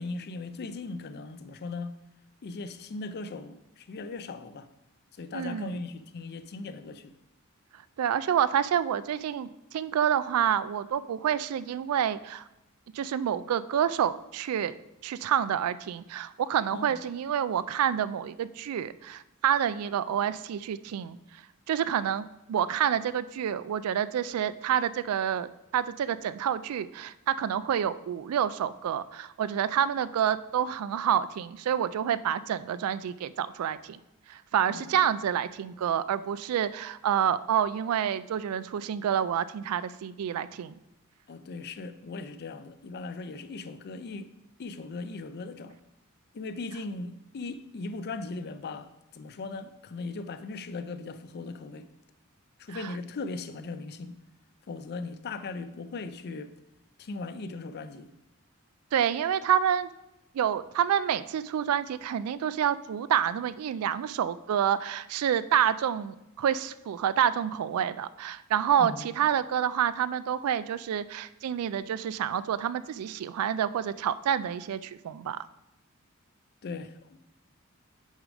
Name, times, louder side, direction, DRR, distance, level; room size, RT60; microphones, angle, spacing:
voice 1, 0.0-2.0 2.4-4.7 5.1-7.1 16.7-17.0 34.7-35.0 41.3-44.3 44.6-45.8 46.3-51.9 52.6-54.2 54.7-56.5 57.0-58.1 68.8-69.1 76.6-77.2, left 3 dB, 50° left, 0.4 m, -38 dB
voice 2, 5.3-5.8 8.0-12.4 12.9-14.7 15.0-21.2 21.7-34.0 34.3-40.7 52.8-52.9 58.9-59.9 60.3-75.4, right 9 dB, 75° right, 0.3 m, -28 dB
6.4 x 5.1 x 4.9 m
head